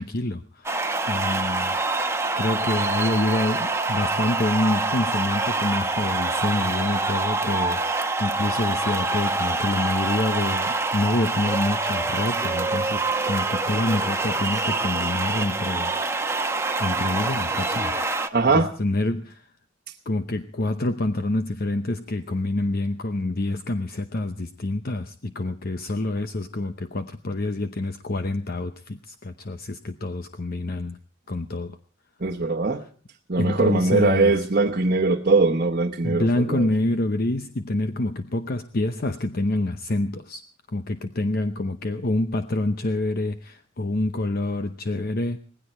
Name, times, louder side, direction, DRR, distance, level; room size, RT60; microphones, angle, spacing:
voice 1, 0.0-1.8 2.4-16.0 16.8-18.1 18.5-19.5 20.1-31.0 31.3-31.8 33.4-34.4 36.0-40.4 40.7-45.4, left 2 dB, 50° left, 9 dB, 0.8 m, -27 dB
sound 1, 0.6-18.3, right 3 dB, 15° right, 1.1 m, -25 dB
voice 2, 18.3-18.7 32.2-32.8 33.3-36.6, right 3 dB, 45° right, 1 dB, 1.1 m, -21 dB
19.0 x 16.5 x 4.3 m, 0.43 s
head